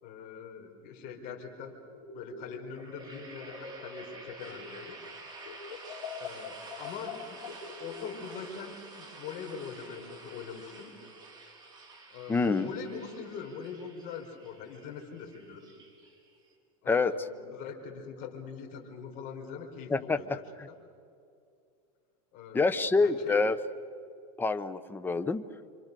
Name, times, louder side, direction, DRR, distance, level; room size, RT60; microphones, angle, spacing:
voice 1, 0.0-1.7 2.1-5.0 6.2-7.4 7.8-10.9 12.1-15.7 16.8-20.4 22.3-23.4, left 6 dB, 45° left, 3 dB, 4.6 m, -43 dB
sound 1, 1.9-5.1 5.4-8.4, left 5 dB, 90° left, 2.9 m, -44 dB
sound 2, 2.7-16.5, right 3 dB, 20° right, 4.8 m, -49 dB
voice 2, 12.3-12.7 16.9-17.1 19.9-20.2 20.6-20.7 22.5-23.6 24.4-25.4, left 3 dB, 10° left, 12 dB, 0.8 m, -26 dB
28.0 x 25.0 x 6.9 m, 2.4 s
supercardioid pair, 145°, 19 cm